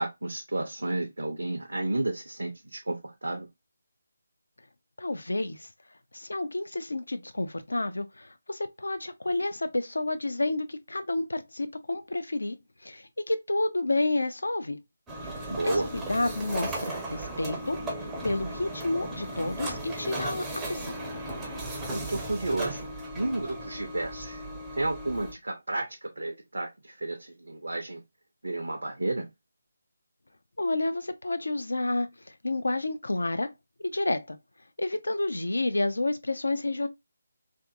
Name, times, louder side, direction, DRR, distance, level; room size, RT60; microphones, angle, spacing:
voice 1, 0.0-3.5 15.5-15.9 21.9-24.5 24.8-28.0 28.4-29.3, right 2 dB, 65° right, 0.5 m, -32 dB
voice 2, 5.0-5.7 6.1-12.6 12.8-14.8 15.2-17.8 18.2-20.9 30.6-33.5 33.8-34.4 34.8-36.9, left 2 dB, 65° left, 0.4 m, -30 dB
sound 1, 15.1-25.3, right 1 dB, 10° right, 0.5 m, -36 dB
2.6 x 2.4 x 2.4 m
figure-of-eight pair, 150°, 0 cm